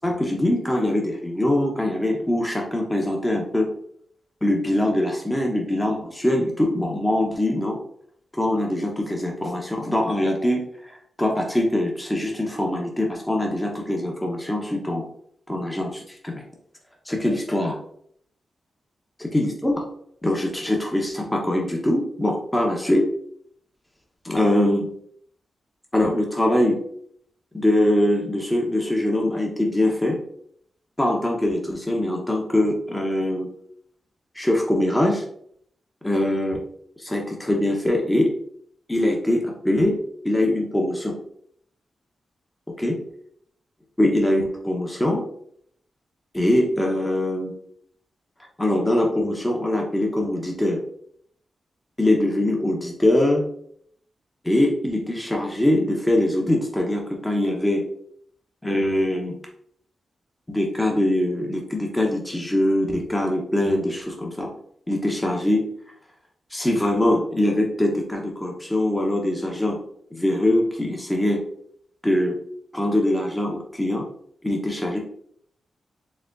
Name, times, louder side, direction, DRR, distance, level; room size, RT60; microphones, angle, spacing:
voice 1, 0.0-3.7 4.4-7.8 8.3-10.6 11.2-15.0 15.5-16.4 17.1-17.8 19.2-19.8 20.2-23.1 24.2-24.9 25.9-26.8 27.5-30.2 31.0-33.5 34.3-35.2 36.0-36.6 37.0-38.3 38.9-40.0 40.2-41.1 42.8-43.0 44.0-45.2 46.3-47.5 48.6-50.8 52.0-53.4 54.4-57.8 58.6-59.3 60.5-64.5 64.9-65.7 66.5-69.8 70.1-71.4 72.0-72.4 72.7-74.0 74.4-75.0, left 1 dB, 15° left, 0 dB, 0.9 m, -22 dB
4.2 x 3.4 x 2.5 m, 0.66 s
cardioid pair, 70°, 0 cm